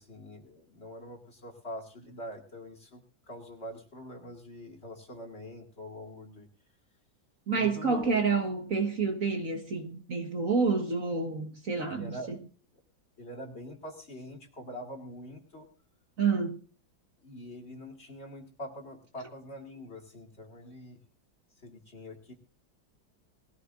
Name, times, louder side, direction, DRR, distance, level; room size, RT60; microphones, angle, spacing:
voice 1, 0.0-6.5 7.5-8.2 11.9-12.3 13.2-15.7 17.2-21.0 21.6-22.3, left 1 dB, 35° left, 2.4 m, -44 dB
voice 2, 7.5-12.4 16.2-16.6, right 4 dB, 45° right, 1.8 m, -29 dB
20.0 x 14.5 x 2.5 m
omnidirectional pair, 2.1 m